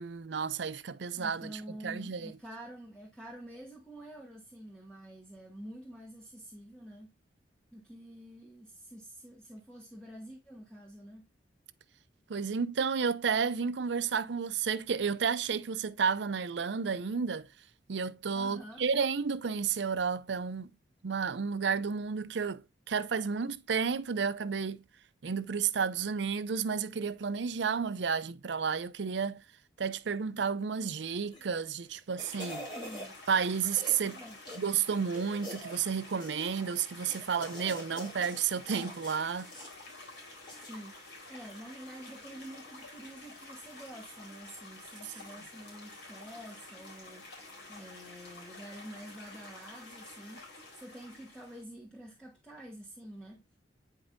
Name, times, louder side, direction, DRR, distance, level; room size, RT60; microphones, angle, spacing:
voice 1, 0.0-2.3 12.3-17.5 17.9-20.7 21.0-24.8 25.2-29.4 29.8-32.7 33.3-34.2 34.6-39.5, right 6 dB, 80° right, 0.5 m, -32 dB
voice 2, 1.2-7.1 7.7-11.3 18.3-18.9 32.7-33.1 34.1-34.4 40.6-47.3 47.7-50.4 50.7-53.4, right 1 dB, 5° left, 1.4 m, -48 dB
sound 1, 31.2-31.6 32.0-33.1 33.7-34.1 34.5-34.6 35.1-35.8 36.2-36.6 37.1-38.4 38.7-39.7 40.5-40.8 41.2-41.3, equal, 25° left, 1.8 m, -45 dB
sound 2, 32.2-51.6, left 2 dB, 85° left, 4.2 m, -50 dB
9.0 x 5.2 x 2.6 m
head